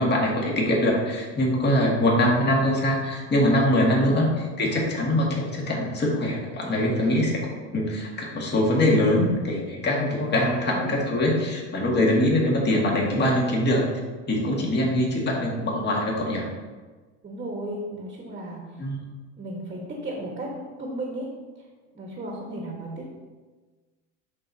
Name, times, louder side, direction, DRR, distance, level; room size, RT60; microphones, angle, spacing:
voice 1, 0.0-7.5 7.7-13.9 14.3-16.5 18.8-19.0, left 1 dB, 25° left, -2 dB, 1.8 m, -23 dB
voice 2, 4.0-4.3 10.6-11.0 11.7-12.2 17.2-18.8 19.4-21.3 21.5-21.6 21.9-23.1, right 1 dB, 20° right, -1 dB, 1.3 m, -35 dB
11.0 x 4.1 x 2.7 m, 1.3 s
supercardioid pair, 105°, 38 cm